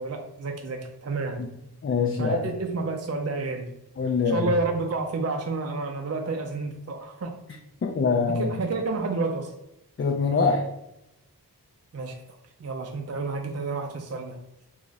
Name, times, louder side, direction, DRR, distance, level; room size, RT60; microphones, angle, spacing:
voice 1, 0.0-1.4 2.2-3.7 4.2-7.3 8.3-9.5 11.9-12.2 12.6-14.4, right 3 dB, 40° right, 3 dB, 0.4 m, -30 dB
voice 2, 1.8-2.4 4.0-4.5 7.8-8.5 10.0-10.7, left 5 dB, 35° left, 2 dB, 0.4 m, -24 dB
2.9 x 2.4 x 3.9 m, 0.88 s
wide cardioid pair, 40°, 40 cm